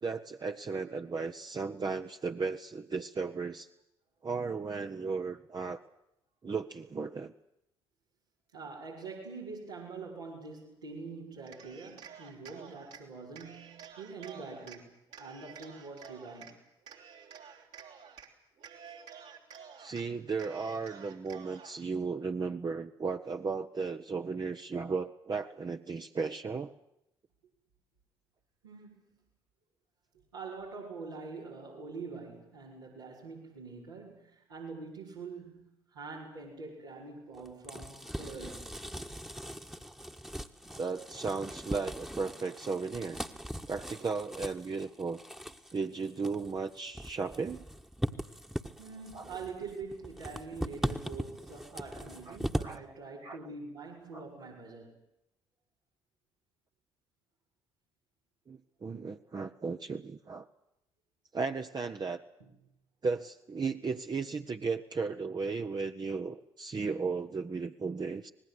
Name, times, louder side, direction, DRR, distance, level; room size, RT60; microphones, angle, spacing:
voice 1, 0.0-3.7 4.2-5.8 6.4-7.3 19.8-26.7 40.8-43.2 43.7-45.2 45.7-47.6 49.1-49.3 52.3-52.4 52.6-52.8 53.2-53.4 54.1-54.2 58.5-60.5 61.3-62.2 63.0-68.3, right 4 dB, 35° right, 4 dB, 1.1 m, -35 dB
voice 2, 8.5-14.9 15.2-16.6 28.6-29.0 30.3-38.8 48.8-55.0 62.4-62.5, right 4 dB, 85° right, -7 dB, 5.4 m, -45 dB
Cheering, 11.4-13.0 13.3-14.8 15.1-16.5 16.9-18.3 18.6-20.0 20.4-21.8, right 7 dB, 65° right, 3.8 m, -51 dB
sound 1, 37.3-52.8, equal, 5° right, 1.6 m, -40 dB
25.5 x 20.0 x 8.1 m, 0.82 s
hypercardioid pair, 45°, 13 cm